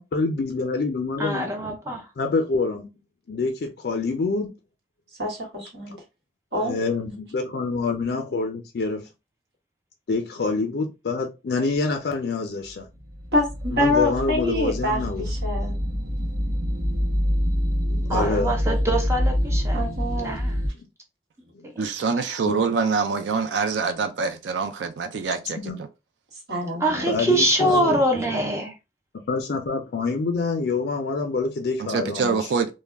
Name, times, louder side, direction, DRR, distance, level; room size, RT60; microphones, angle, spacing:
voice 1, 0.1-1.5 2.2-2.9 3.3-4.5 5.9-6.0 6.5-9.0 10.1-12.9 13.7-15.3 17.9-18.5 21.5-21.6 22.5-22.6 25.5-25.8 27.1-28.0 29.3-32.5, left 3 dB, 65° left, 0.4 m, -26 dB
voice 2, 1.2-2.1 18.1-19.8 20.2-20.6 21.6-21.9 26.8-28.7, right 1 dB, 15° right, 0.4 m, -24 dB
voice 3, 5.2-5.9 6.5-6.7 13.3-15.7 19.7-20.4 26.5-27.1 27.9-28.0, left 1 dB, 70° right, 1.2 m, -26 dB
sound 1, 12.9-20.7, equal, 50° right, 0.6 m, -26 dB
voice 4, 21.8-25.6 31.9-32.7, right 5 dB, 85° right, 0.4 m, -25 dB
2.2 x 2.1 x 3.3 m
head